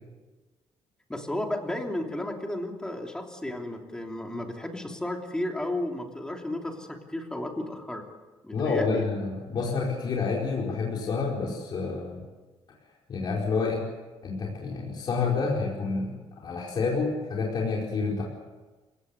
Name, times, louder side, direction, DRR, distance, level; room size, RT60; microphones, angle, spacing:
voice 1, 1.1-8.0 8.4-9.1, left 1 dB, 5° left, 2 dB, 3.2 m, -33 dB
voice 2, 8.5-12.2 13.1-13.8 14.2-16.1 16.4-18.2, left 4 dB, 45° left, -2 dB, 4.6 m, -28 dB
27.5 x 17.0 x 9.5 m, 1.3 s
cardioid pair, 150°, 10 cm